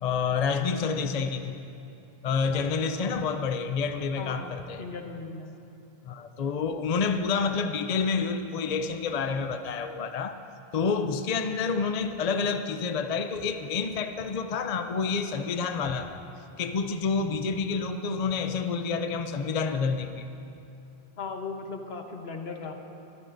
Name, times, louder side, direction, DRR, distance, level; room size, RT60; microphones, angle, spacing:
voice 1, 0.0-1.6 2.2-4.8 6.0-10.4 10.7-16.2 16.6-20.3, left 5 dB, 45° left, 7 dB, 0.6 m, -28 dB
voice 2, 4.2-5.5 21.2-22.7, left 4 dB, 75° left, 4 dB, 1.3 m, -38 dB
22.5 x 14.0 x 2.6 m, 2.7 s
omnidirectional pair, 1.0 m